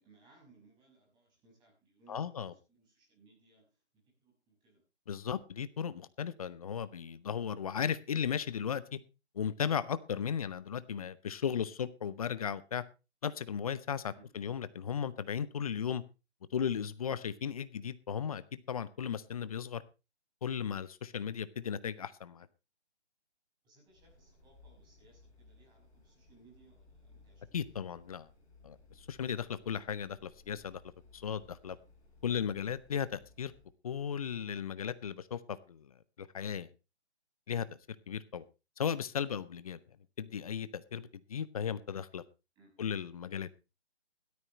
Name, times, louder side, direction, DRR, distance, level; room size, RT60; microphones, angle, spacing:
voice 1, 0.0-3.8 4.2-4.8 14.1-14.3 23.6-27.5 42.6-42.7, right 3 dB, 15° right, 5.9 m, -64 dB
voice 2, 2.1-2.5 5.1-9.0 9.3-12.8 13.2-16.0 16.5-19.8 20.4-22.5 27.5-28.3 28.6-30.8 31.1-31.8 32.2-33.5 33.8-35.9 36.2-36.7 37.5-37.7 38.1-38.4 38.8-39.8 40.2-42.2 42.8-43.5, left 7 dB, 35° left, 0.8 m, -36 dB
sound 1, 23.9-33.7, left 3 dB, 10° left, 5.1 m, -61 dB
17.0 x 13.0 x 3.2 m
figure-of-eight pair, 150°, 34 cm